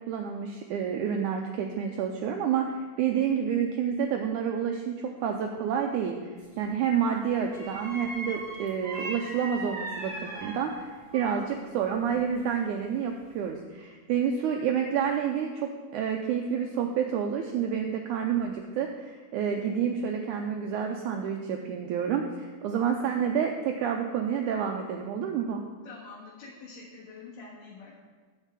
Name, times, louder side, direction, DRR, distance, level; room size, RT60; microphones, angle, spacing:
voice 1, 0.1-25.6, right 7 dB, 80° right, 3 dB, 1.8 m, -29 dB
sound 1, 6.4-6.7 7.5-11.6 11.9-12.9 13.3-13.5, right 2 dB, 30° right, 2.9 m, -39 dB
voice 2, 25.8-27.9, left 4 dB, 70° left, -6 dB, 3.1 m, -46 dB
9.0 x 6.5 x 7.4 m, 1.4 s
omnidirectional pair, 4.1 m